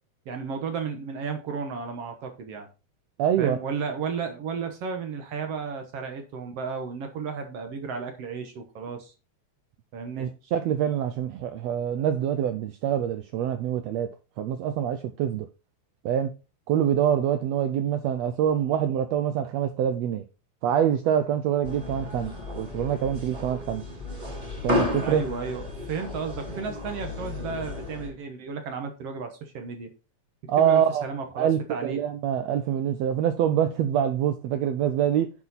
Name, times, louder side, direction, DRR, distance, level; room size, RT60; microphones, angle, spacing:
voice 1, 0.3-2.7 3.4-9.1 9.9-10.3 25.0-29.9 30.6-32.0, right 5 dB, 60° right, 1.9 m, -33 dB
voice 2, 3.2-3.6 10.2-14.1 14.4-15.5 16.0-16.3 16.7-20.2 20.6-23.8 24.6-25.2 30.5-31.0 31.4-35.3, right 9 dB, 80° right, 1.5 m, -25 dB
sound 1, 21.6-28.1, left 2 dB, 10° right, 2.6 m, -33 dB
9.5 x 4.9 x 4.1 m
omnidirectional pair, 3.5 m